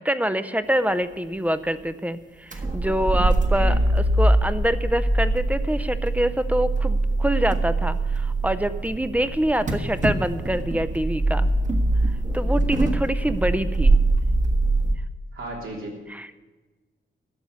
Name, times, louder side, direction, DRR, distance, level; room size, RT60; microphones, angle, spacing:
voice 1, 0.0-11.5 12.3-14.0 16.1-16.3, right 1 dB, 5° right, 12 dB, 0.6 m, -25 dB
sound 1, 2.5-14.9, right 2 dB, 35° right, 1.5 m, -23 dB
voice 2, 15.3-16.0, right 2 dB, 80° right, -2 dB, 3.3 m, -34 dB
12.0 x 7.1 x 9.5 m, 1.3 s
wide cardioid pair, 125°, 21 cm